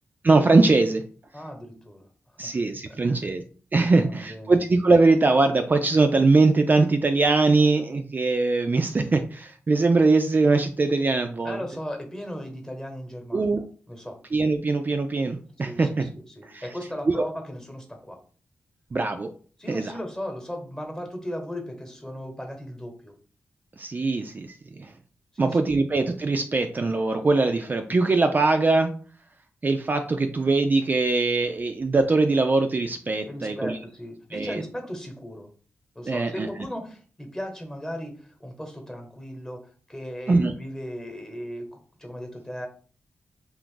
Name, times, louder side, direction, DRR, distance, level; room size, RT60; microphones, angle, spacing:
voice 1, 0.2-1.0 2.4-3.4 3.7-11.6 13.3-13.6 14.3-16.1 16.5-16.6 17.2-17.3 18.9-19.3 19.7-19.9 23.8-24.9 25.4-28.9 29.6-33.8 34.3-34.6 36.1-36.5 40.3-40.5, right 3 dB, 35° right, 6 dB, 0.3 m, -21 dB
voice 2, 1.3-2.1 2.3-2.5 3.0-3.2 3.9-4.6 11.4-13.6 13.9-14.2 15.6-18.2 19.6-23.1 25.3-25.8 33.3-35.5 35.9-42.7, equal, 10° left, 3 dB, 1.0 m, -37 dB
2.5 x 2.3 x 3.8 m, 0.42 s
cardioid pair, 50°, 5 cm